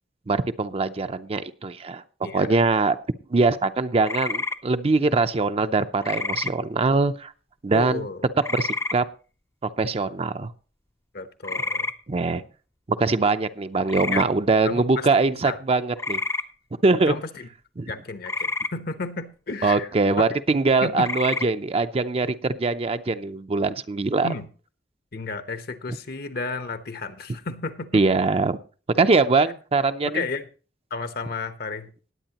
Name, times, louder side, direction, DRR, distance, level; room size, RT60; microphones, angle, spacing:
voice 1, 0.3-2.0 2.3-3.0 3.3-7.3 7.6-8.0 8.5-9.0 9.6-10.5 12.1-12.4 13.0-16.2 16.8-17.2 17.8-17.9 19.6-24.3 27.9-28.6 29.0-30.2, right 3 dB, 35° right, 0.5 m, -22 dB
voice 2, 2.2-2.6 7.7-8.3 11.1-11.9 14.1-14.3 14.6-15.1 15.4-15.6 17.0-17.5 17.9-19.9 20.2-20.3 20.8-21.1 24.2-24.5 25.1-28.1 30.0-30.5 30.9-31.9, left 4 dB, 60° left, 1.0 m, -32 dB
sound 1, 4.0-4.6 6.0-6.5 8.4-9.0 11.4-11.9 13.9-14.3 16.0-16.4 18.3-18.7 21.0-21.5, left 3 dB, 15° left, 0.5 m, -28 dB
19.0 x 8.5 x 2.9 m
head